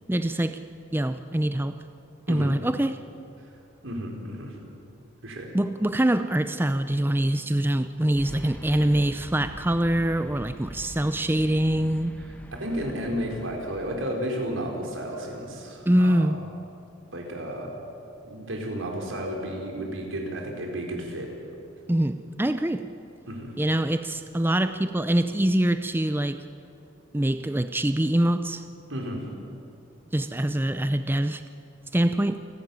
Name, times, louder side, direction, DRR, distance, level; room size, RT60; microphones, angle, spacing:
voice 1, 0.1-0.6 0.9-1.8 2.3-3.0 5.5-12.1 15.9-16.4 21.9-22.9 23.6-26.4 27.1-28.6 30.1-31.4 31.9-32.4, right 1 dB, 10° right, 10 dB, 0.5 m, -24 dB
voice 2, 3.8-4.5 5.2-5.5 12.2-16.3 17.1-17.8 18.2-21.4 23.3-23.5 28.9-29.3, equal, 80° right, 1 dB, 4.3 m, -32 dB
sound 1, 8.1-14.1, equal, 5° left, 1.0 m, -43 dB
28.0 x 12.5 x 9.4 m, 2.7 s
head